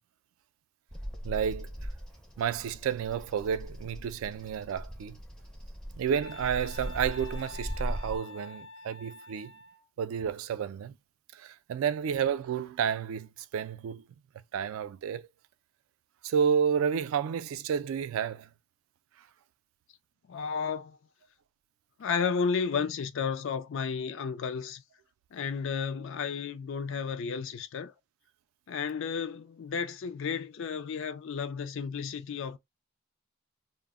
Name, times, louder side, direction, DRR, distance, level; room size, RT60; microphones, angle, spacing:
Bird vocalization bird call bird song, 0.9-8.2, equal, 5° left, 0.4 m, -40 dB
voice 1, 1.2-1.7 2.4-5.2 5.9-9.5 10.0-10.9 11.3-14.0 14.5-15.3 16.2-18.5, right 7 dB, 75° right, 0.3 m, -31 dB
Wind instrument woodwind instrument, 6.2-9.9, left 4 dB, 85° left, 0.8 m, -47 dB
voice 2, 20.3-21.0 22.0-24.8 25.3-27.9 28.7-32.6, left 6 dB, 60° left, 0.4 m, -32 dB
2.0 x 2.0 x 3.5 m
head